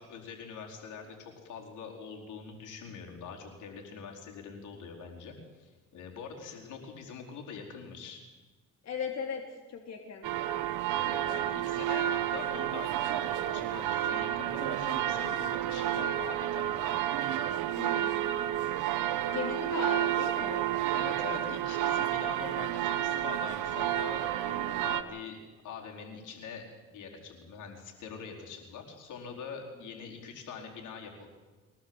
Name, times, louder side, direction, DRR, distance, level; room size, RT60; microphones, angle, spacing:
voice 1, 0.0-8.2 10.9-16.9 20.9-26.6 26.9-31.3, left 6 dB, 80° left, 1 dB, 4.7 m, -44 dB
voice 2, 8.8-9.4 9.7-10.3 17.8-18.3 19.3-20.7 30.2-30.3, left 6 dB, 60° left, 1 dB, 3.3 m, -37 dB
sound 1, 10.2-25.0, right 12 dB, 85° right, 1.2 m, -30 dB
23.5 x 18.5 x 8.0 m, 1.3 s
cardioid pair, 90°, 30 cm